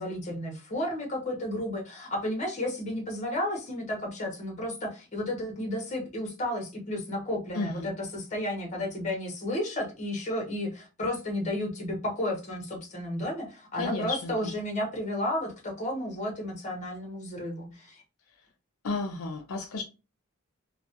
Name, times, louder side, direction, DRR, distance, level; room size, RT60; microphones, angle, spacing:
voice 1, 0.0-18.0, left 1 dB, 30° left, 0.7 m, -32 dB
voice 2, 7.5-7.9 13.8-14.5 18.8-19.8, left 3 dB, 75° left, 0.5 m, -32 dB
2.3 x 2.0 x 2.7 m
head